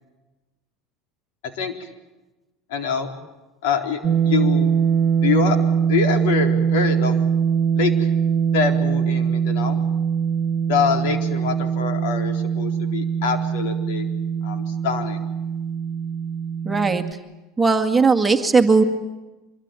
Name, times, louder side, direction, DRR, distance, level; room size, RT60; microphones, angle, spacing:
voice 1, 1.4-1.9 2.7-3.1 3.6-4.7 5.2-5.6 5.8-7.2 7.8-8.1 8.5-9.8 10.7-14.1 14.4-15.3, left 6 dB, 80° left, 6 dB, 4.0 m, -25 dB
sound 1, 4.0-17.1, right 7 dB, 40° right, 1.6 m, -22 dB
voice 2, 16.7-17.0 17.6-18.8, right 4 dB, 10° right, 4 dB, 2.1 m, -17 dB
25.5 x 22.5 x 9.1 m, 1.1 s
supercardioid pair, 135°, 0 cm